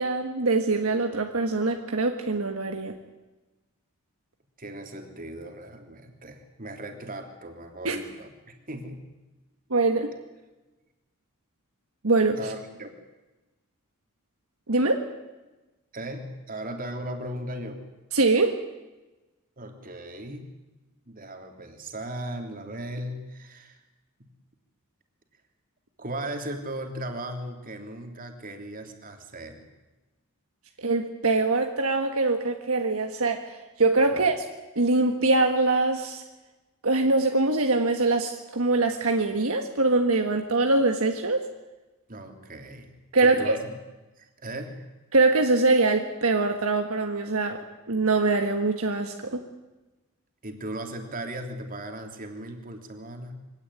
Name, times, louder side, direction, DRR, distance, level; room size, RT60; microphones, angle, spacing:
voice 1, 0.0-2.9 7.8-8.0 9.7-10.1 12.0-12.4 14.7-15.0 18.1-18.6 30.8-34.4 34.7-36.2 36.8-41.4 43.1-43.6 45.1-47.6 47.9-49.4, right 3 dB, 70° right, 5 dB, 1.6 m, -23 dB
voice 2, 4.6-9.0 12.4-12.9 15.9-17.8 19.6-20.5 21.1-23.8 24.2-24.3 26.0-29.6 34.1-34.3 42.1-43.7 44.2-44.9 50.4-53.3, right 1 dB, 40° right, 5 dB, 3.1 m, -37 dB
24.0 x 17.5 x 10.0 m, 1.1 s
head